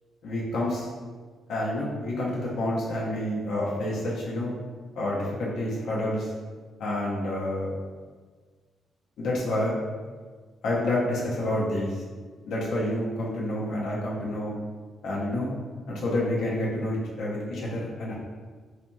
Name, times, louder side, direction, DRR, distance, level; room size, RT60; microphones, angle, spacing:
voice 1, 0.2-0.9 1.5-4.5 5.0-6.3 6.8-7.7 9.2-9.8 10.6-11.9 12.5-14.5 15.0-15.5 15.9-18.1, left 1 dB, 70° left, -4 dB, 0.8 m, -28 dB
4.1 x 2.8 x 2.3 m, 1.5 s
cardioid pair, 170°, 0 cm